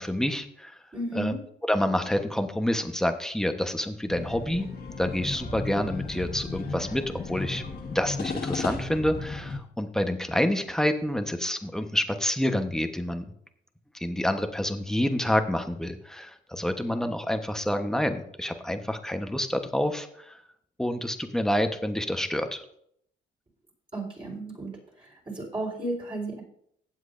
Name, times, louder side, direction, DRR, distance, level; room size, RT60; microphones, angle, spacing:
voice 1, 0.0-0.8 1.1-1.3 1.7-4.7 5.0-7.6 7.9-13.2 13.9-20.4 20.8-22.6, left 1 dB, 5° left, 7 dB, 1.1 m, -28 dB
voice 2, 0.9-1.4 23.9-24.7 25.0-26.4, right 1 dB, 25° right, -2 dB, 4.1 m, -33 dB
sound 1, 4.1-9.6, left 3 dB, 50° left, 1.8 m, -35 dB
17.0 x 7.6 x 2.6 m, 0.69 s
cardioid pair, 90°, 20 cm